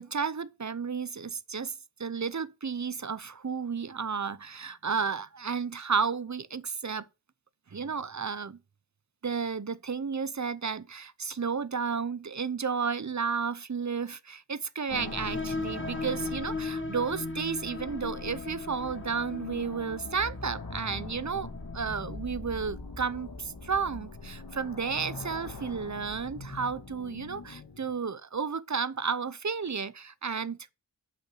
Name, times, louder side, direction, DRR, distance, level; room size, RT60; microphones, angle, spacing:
voice 1, 0.0-7.1 7.7-8.6 9.2-30.7, right 5 dB, 40° right, 0.8 m, -32 dB
sound 1, 14.9-28.0, left 3 dB, 50° left, 1.8 m, -41 dB
sound 2, 15.0-22.3, left 3 dB, 25° left, 1.4 m, -39 dB
8.5 x 6.4 x 6.5 m
wide cardioid pair, 55°, 46 cm